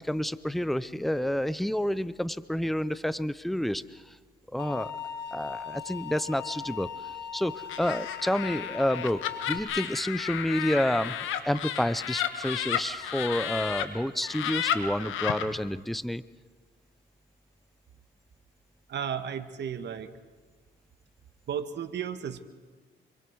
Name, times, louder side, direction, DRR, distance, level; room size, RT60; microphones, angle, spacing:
voice 1, 0.0-4.0 4.5-4.9 5.3-11.1 11.4-16.2, equal, ahead, 16 dB, 0.7 m, -29 dB
sound 1, 4.6-9.6, left 8 dB, 60° left, 2.3 m, -39 dB
Laughter, 7.7-13.8 14.2-15.4, left 10 dB, 85° left, 1.6 m, -32 dB
voice 2, 18.9-20.1 21.5-22.4, right 8 dB, 60° right, 9 dB, 1.6 m, -34 dB
26.0 x 24.0 x 4.8 m, 1.4 s
cardioid pair, 90°, 20 cm